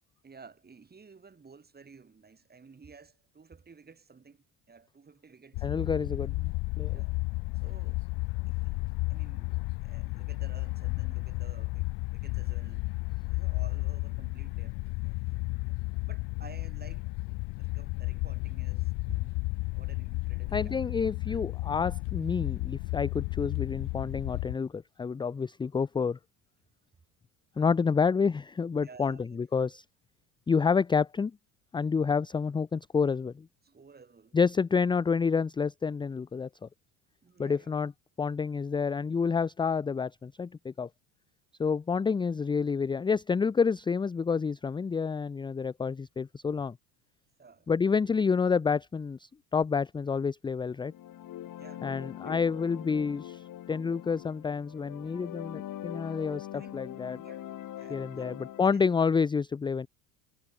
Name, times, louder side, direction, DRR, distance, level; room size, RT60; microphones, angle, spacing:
voice 1, 0.2-5.7 5.9-6.1 6.9-7.1 7.6-8.0 8.5-8.8 9.1-12.9 13.2-14.8 16.0-17.1 17.6-20.8 21.3-21.5 28.8-29.4 33.6-34.4 37.2-37.7 47.4-47.7 51.5-52.4 56.5-56.8 57.1-58.8, right 5 dB, 20° right, 7.5 m, -54 dB
sound 1, 5.5-24.6, left 26 dB, 75° left, 1.8 m, -33 dB
voice 2, 5.6-7.0 20.5-26.2 27.6-29.8 30.5-31.3 31.7-33.5 34.3-36.5 37.4-37.9 38.2-40.9 41.6-46.8 47.7-50.9 51.8-57.2 57.9-59.9, left 5 dB, 10° left, 0.4 m, -29 dB
sound 2, 50.8-58.7, left 12 dB, 50° left, 2.5 m, -43 dB
cardioid pair, 115°, 42 cm